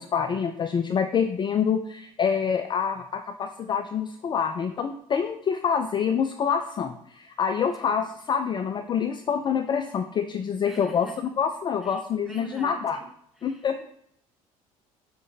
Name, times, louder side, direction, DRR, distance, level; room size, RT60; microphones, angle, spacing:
voice 1, 0.0-11.1 11.4-13.0 13.4-13.8, left 7 dB, 25° left, 7 dB, 0.4 m, -26 dB
voice 2, 10.7-11.2 11.8-12.8 13.4-13.8, equal, ahead, 2 dB, 1.0 m, -45 dB
5.2 x 3.6 x 2.8 m, 0.70 s
figure-of-eight pair, 60°, 18 cm